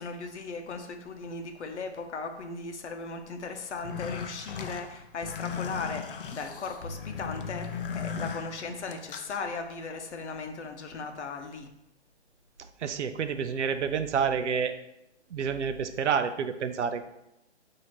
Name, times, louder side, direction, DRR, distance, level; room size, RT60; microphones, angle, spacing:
voice 1, 0.0-11.7, left 4 dB, 80° left, 6 dB, 0.8 m, -37 dB
sound 1, 3.7-9.4, left 6 dB, 55° left, 0.5 m, -37 dB
voice 2, 12.8-14.7 15.3-17.0, right 6 dB, 85° right, 9 dB, 0.6 m, -28 dB
5.7 x 2.7 x 3.0 m, 0.85 s
hypercardioid pair, 155°, 34 cm